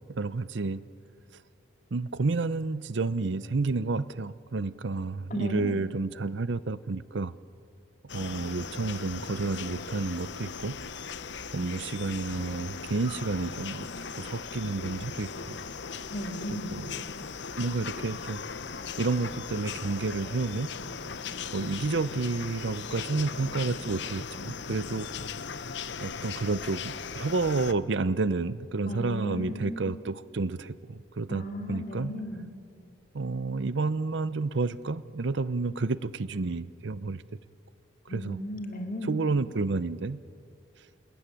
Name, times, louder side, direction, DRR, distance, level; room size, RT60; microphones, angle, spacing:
voice 1, 0.1-0.8 1.9-7.3 8.1-10.8 11.5-15.6 16.5-17.0 17.6-18.4 19.0-20.7 21.5-25.1 26.0-32.2 33.1-37.2 38.1-38.4 39.0-40.2, right 3 dB, 65° right, 17 dB, 0.6 m, -30 dB
voice 2, 5.3-5.8 16.1-16.8 28.9-29.9 31.3-32.5 38.1-39.2, left 1 dB, 45° left, 4 dB, 2.6 m, -35 dB
sound 1, 8.1-27.7, left 5 dB, 60° left, 0.8 m, -38 dB
27.5 x 20.0 x 9.9 m, 2.5 s
head